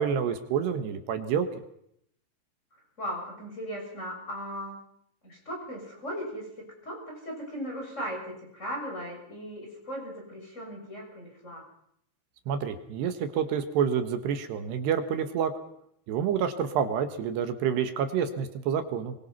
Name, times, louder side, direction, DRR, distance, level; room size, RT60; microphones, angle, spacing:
voice 1, 0.0-1.5 12.5-15.5 16.1-19.1, right 7 dB, 70° right, 8 dB, 3.4 m, -28 dB
voice 2, 3.0-4.8 5.2-6.5 6.8-11.7, equal, 15° left, 0 dB, 7.1 m, -37 dB
24.0 x 22.5 x 5.8 m, 0.72 s
omnidirectional pair, 5.5 m